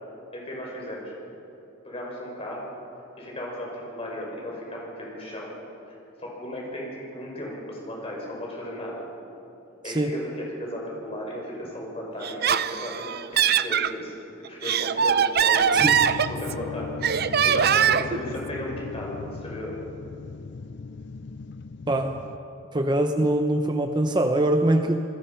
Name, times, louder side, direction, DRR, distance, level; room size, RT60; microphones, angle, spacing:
voice 1, 0.3-1.1 1.8-2.7 3.2-5.5 5.9-9.0 9.8-13.1 13.6-14.1 14.5-17.2 17.4-19.8, left 1 dB, 30° left, -3 dB, 6.6 m, -35 dB
Laughter, 12.2-13.9 14.4-16.6 17.0-18.2, right 8 dB, 50° right, 0.6 m, -22 dB
sound 1, 15.7-22.4, left 4 dB, 55° left, 0.6 m, -37 dB
voice 2, 21.9-22.2 22.7-25.0, right 1 dB, 20° right, 6 dB, 0.8 m, -23 dB
28.5 x 20.5 x 5.8 m, 3.0 s
head